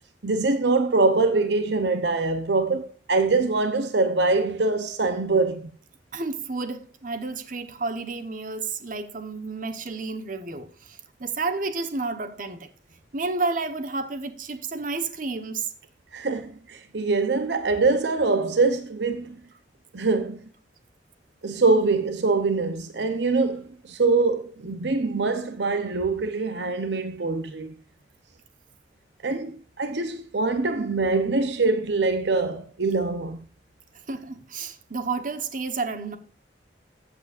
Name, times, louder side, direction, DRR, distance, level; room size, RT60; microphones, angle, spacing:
voice 1, 0.2-5.7 16.1-19.4 19.9-20.4 21.4-27.7 29.2-33.4, right 3 dB, 70° right, 0.9 m, -24 dB
voice 2, 6.1-12.7 13.1-15.7 34.1-36.2, right 3 dB, 45° right, 1.2 m, -31 dB
15.0 x 8.3 x 2.6 m
head